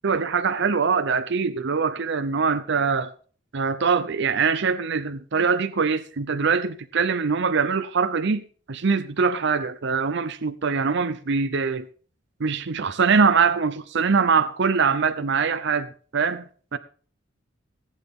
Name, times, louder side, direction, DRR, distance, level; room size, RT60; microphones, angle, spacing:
voice 1, 0.0-3.1 3.5-8.4 8.7-11.9 12.4-16.8, right 5 dB, 65° right, 0.7 m, -23 dB
18.5 x 9.0 x 3.7 m
head